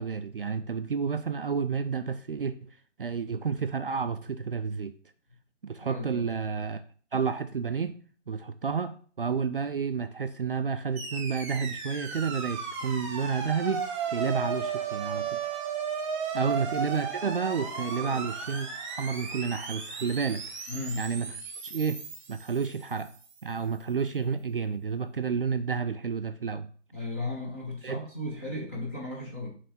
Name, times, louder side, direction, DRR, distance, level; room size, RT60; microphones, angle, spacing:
voice 1, 0.0-2.7 3.0-4.9 5.6-6.8 7.1-8.0 8.3-15.4 16.3-20.4 21.0-21.3 21.6-22.0 22.3-23.1 23.4-26.7 27.8-28.0, right 6 dB, 50° right, 9 dB, 0.4 m, -30 dB
voice 2, 5.8-6.3 18.0-18.2 20.7-21.0 26.9-29.5, left 2 dB, 10° left, -3 dB, 0.6 m, -36 dB
sound 1, 11.0-23.2, right 6 dB, 25° right, 0.9 m, -35 dB
6.8 x 3.3 x 4.2 m, 0.44 s
figure-of-eight pair, 155°, 37 cm